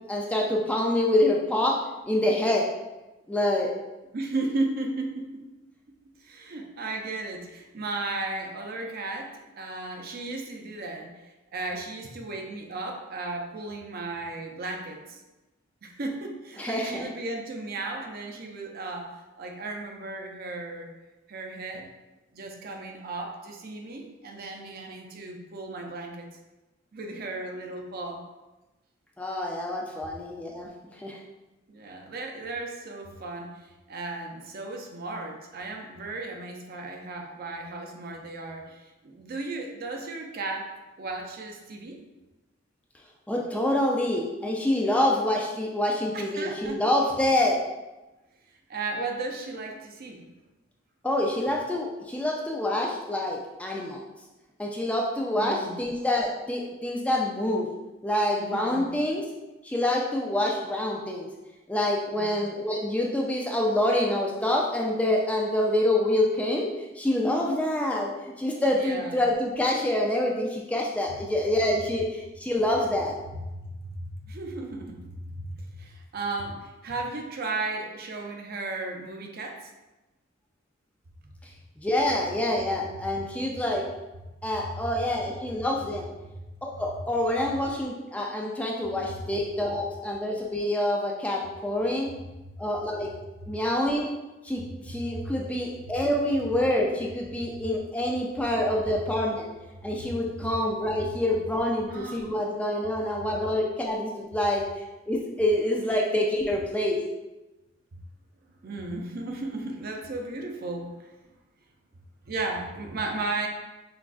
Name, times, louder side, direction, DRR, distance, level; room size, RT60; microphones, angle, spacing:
voice 1, 0.1-1.8 2.1-2.6 3.3-3.7 16.6-17.1 29.2-31.2 43.3-47.6 51.0-54.0 54.6-57.7 58.0-59.3 59.6-61.3 61.7-73.2 81.8-83.9 84.4-86.1 86.6-92.1 92.6-93.1 93.5-94.1 94.4-99.5 99.8-107.0, left 1 dB, 5° left, -1 dB, 0.3 m, -26 dB
voice 2, 4.1-5.4 6.2-11.1 11.5-15.2 15.8-20.9 21.3-21.9 22.3-26.3 26.9-28.2 31.7-40.7 41.0-42.0 46.1-46.8 48.7-50.2 55.4-55.8 58.4-58.9 62.1-62.3 68.7-69.2 73.5-75.0 75.3-79.7 95.1-95.3 101.9-102.4 108.6-111.1 112.3-113.5, right 2 dB, 50° right, 2 dB, 0.5 m, -35 dB
5.9 x 2.3 x 2.4 m, 1.1 s
head